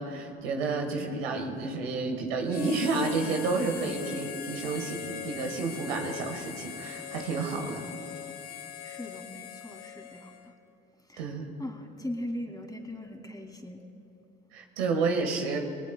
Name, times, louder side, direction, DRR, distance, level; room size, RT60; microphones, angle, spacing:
voice 1, 0.0-7.8 11.2-11.5 14.5-15.6, right 3 dB, 80° right, 3 dB, 1.6 m, -30 dB
Harmonica, 2.5-10.5, left 9 dB, 55° left, 1.2 m, -41 dB
voice 2, 8.8-10.5 11.1-11.3 11.6-13.8, left 1 dB, 10° left, 4 dB, 2.5 m, -39 dB
22.5 x 19.0 x 2.3 m, 2.8 s
hypercardioid pair, 50°, 30 cm